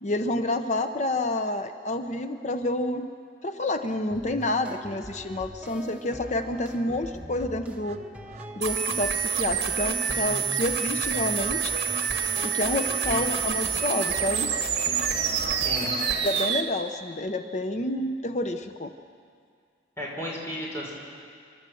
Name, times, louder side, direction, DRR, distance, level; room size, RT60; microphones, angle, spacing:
voice 1, 0.0-3.1 3.4-8.0 8.6-11.8 12.4-14.5 16.2-18.9, left 1 dB, 40° left, 8 dB, 0.7 m, -29 dB
sound 1, 4.1-16.1, equal, 10° right, 1.0 m, -42 dB
sound 2, 6.4-6.5 6.9-16.5, right 5 dB, 40° right, 0.8 m, -41 dB
sound 3, 8.6-16.6, right 7 dB, 65° right, 1.7 m, -27 dB
voice 2, 15.6-16.0 20.0-20.9, equal, 15° left, -4 dB, 5.1 m, -34 dB
28.5 x 12.0 x 7.7 m, 2.2 s
head